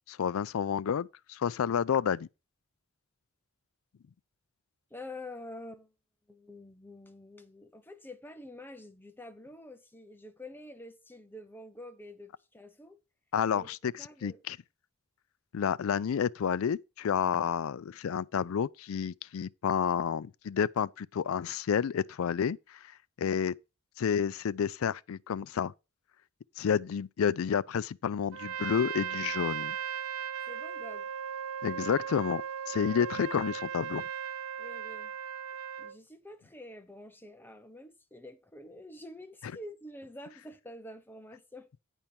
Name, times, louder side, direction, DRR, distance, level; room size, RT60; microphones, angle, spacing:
voice 1, 0.1-2.3 13.3-13.8 14.2-14.6 15.5-22.8 23.2-23.5 24.0-25.7 26.6-29.8 31.6-34.0, left 7 dB, 75° left, 0.4 m, -30 dB
voice 2, 4.9-5.9 6.3-13.0 13.5-13.7 14.0-14.4 30.5-31.1 32.8-33.0 34.6-35.1 35.8-41.7, left 1 dB, 10° left, 0.8 m, -47 dB
Trumpet, 28.3-36.0, right 8 dB, 85° right, 0.4 m, -37 dB
10.0 x 4.5 x 5.3 m
head